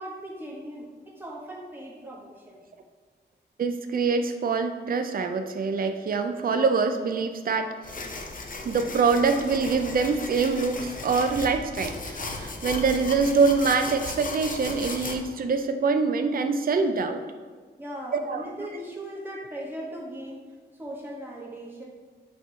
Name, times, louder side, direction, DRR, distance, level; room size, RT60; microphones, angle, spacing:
voice 1, 0.0-2.6 17.8-20.4 20.8-21.8, right 1 dB, 10° right, -3 dB, 1.3 m, -38 dB
voice 2, 3.6-7.7 8.6-17.2 18.1-18.5, right 4 dB, 55° right, 6 dB, 0.4 m, -25 dB
sound 1, 7.8-15.2, left 3 dB, 50° left, 0.7 m, -36 dB
8.3 x 3.0 x 4.0 m, 1.5 s
wide cardioid pair, 100°, 18 cm